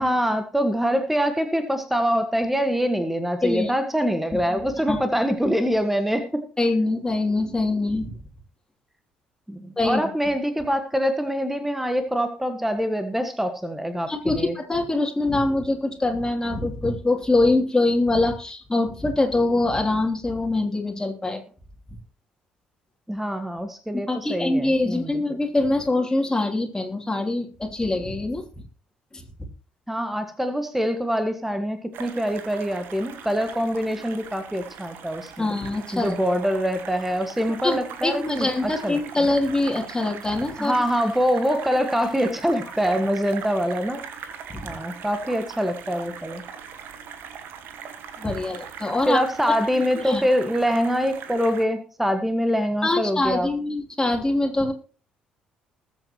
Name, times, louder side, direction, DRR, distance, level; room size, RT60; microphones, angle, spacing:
voice 1, 0.0-6.5 9.5-14.5 23.1-25.4 29.9-35.5 35.9-39.2 40.6-44.0 44.6-46.4 49.1-53.5, equal, 5° right, 8 dB, 1.6 m, -24 dB
voice 2, 4.3-5.0 6.6-8.1 9.8-10.0 14.1-21.4 24.1-28.4 29.1-29.2 35.4-36.1 37.6-40.8 44.5-44.7 48.2-49.2 50.1-50.2 52.8-54.7, left 2 dB, 15° left, 1 dB, 3.1 m, -24 dB
sound 1, 31.9-51.6, right 7 dB, 60° right, 1.6 m, -40 dB
20.5 x 8.1 x 3.1 m, 0.39 s
figure-of-eight pair, 50°, 4 cm